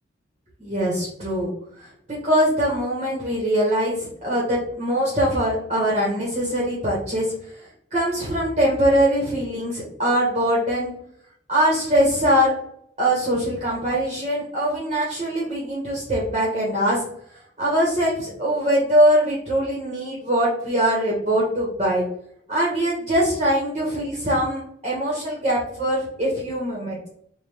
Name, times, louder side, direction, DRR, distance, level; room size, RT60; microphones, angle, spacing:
voice 1, 0.6-1.5 1.8-1.9 2.2-7.3 7.9-10.9 11.5-12.5 13.0-17.0 17.6-22.0 22.5-27.0, equal, 30° right, -5 dB, 1.3 m, -22 dB
5.1 x 2.5 x 3.5 m, 0.68 s
head